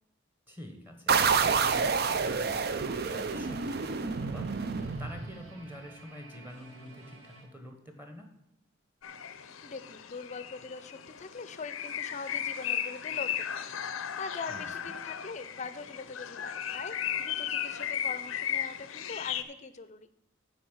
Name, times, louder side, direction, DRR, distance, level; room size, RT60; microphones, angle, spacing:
voice 1, 0.5-8.3 14.5-14.7, equal, 10° right, 4 dB, 1.2 m, -47 dB
sound 1, 1.1-5.6, right 5 dB, 50° right, 0.5 m, -28 dB
sound 2, 2.4-7.4, right 2 dB, 70° right, 3.7 m, -54 dB
sound 3, 9.0-19.4, left 9 dB, 85° left, 0.6 m, -36 dB
voice 2, 9.3-20.1, left 4 dB, 35° left, 13 dB, 0.5 m, -42 dB
8.5 x 5.0 x 7.4 m, 0.82 s
head